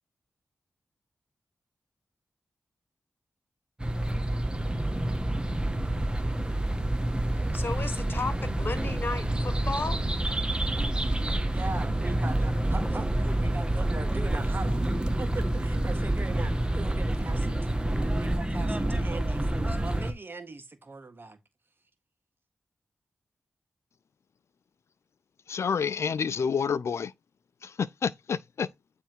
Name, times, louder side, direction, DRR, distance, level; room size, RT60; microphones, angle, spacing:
sound 1, 3.8-20.1, right 1 dB, 20° right, 1.2 m, -28 dB
voice 1, 7.5-10.0, left 3 dB, 50° left, 1.4 m, -34 dB
voice 2, 11.5-21.4, right 3 dB, 50° right, 1.7 m, -40 dB
voice 3, 25.5-27.1 27.6-28.7, left 6 dB, 75° left, 0.5 m, -29 dB
9.0 x 3.5 x 4.6 m
cardioid pair, 45°, 5 cm